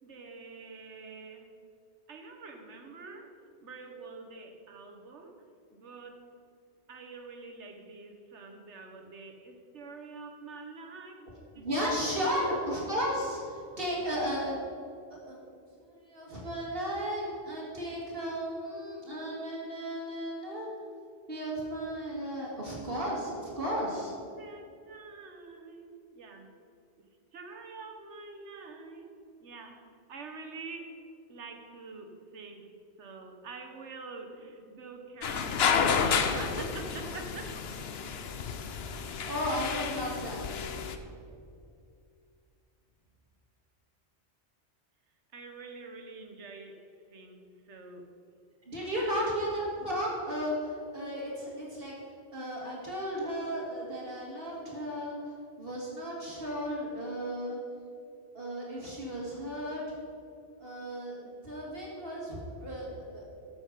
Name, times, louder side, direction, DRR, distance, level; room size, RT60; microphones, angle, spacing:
voice 1, 0.0-1.5 2.1-5.3 5.7-6.2 6.9-11.2 11.5-12.4 14.0-14.1 23.8-23.9 24.2-26.5 27.3-29.1 29.4-29.8 30.1-31.0 31.3-32.6 33.0-37.6 45.3-46.8 47.1-48.1 49.0-49.3, right 3 dB, 85° right, 4 dB, 1.5 m, -46 dB
voice 2, 11.6-14.5 15.3-15.4 15.8-20.7 21.3-24.1 39.2-40.6 48.7-51.9 52.3-55.2 55.6-57.6 58.3-59.8 60.6-63.2, equal, 55° right, -4 dB, 2.0 m, -34 dB
sound 1, 35.2-41.0, left 6 dB, 65° left, 0.9 m, -31 dB
13.0 x 7.1 x 5.0 m, 2.5 s
omnidirectional pair, 1.2 m